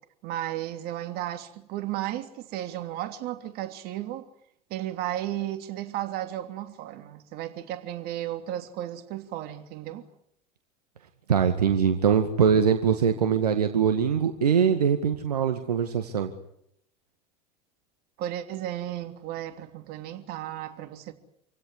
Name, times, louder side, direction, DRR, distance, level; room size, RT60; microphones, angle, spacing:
voice 1, 0.2-4.3 4.7-10.1 18.2-21.1, right 13 dB, 50° right, 3.1 m, -34 dB
voice 2, 11.3-16.3, right 7 dB, 75° right, 1.9 m, -22 dB
27.5 x 17.0 x 9.9 m
figure-of-eight pair, 75°, 20 cm